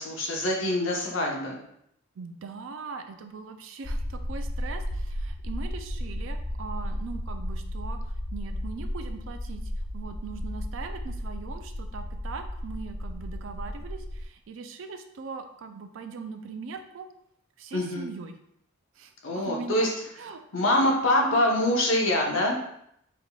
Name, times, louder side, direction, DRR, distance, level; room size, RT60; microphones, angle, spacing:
voice 1, 0.0-1.6 17.7-18.1 19.2-19.9 20.5-22.6, left 1 dB, 70° left, -1 dB, 0.8 m, -24 dB
voice 2, 2.2-17.1 17.6-18.4 19.0-20.4 21.1-21.4, right 4 dB, 70° right, 7 dB, 0.4 m, -40 dB
sound 1, 3.8-14.3, equal, 25° left, 0.3 m, -34 dB
3.6 x 3.4 x 2.3 m, 0.74 s
head